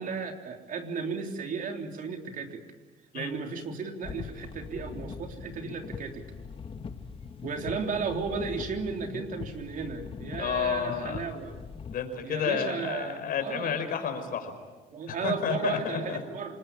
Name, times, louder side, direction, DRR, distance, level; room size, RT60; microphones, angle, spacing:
voice 1, 0.0-2.6 3.1-6.2 7.4-11.5 12.2-13.9 14.9-16.6, right 5 dB, 50° right, 4 dB, 3.5 m, -34 dB
sound 1, 4.0-11.9, left 5 dB, 30° left, 1.7 m, -41 dB
voice 2, 10.4-11.2 11.9-14.5 15.1-16.2, left 7 dB, 60° left, 6 dB, 5.0 m, -31 dB
27.5 x 20.5 x 8.9 m, 1.4 s
cardioid pair, 110°, 17 cm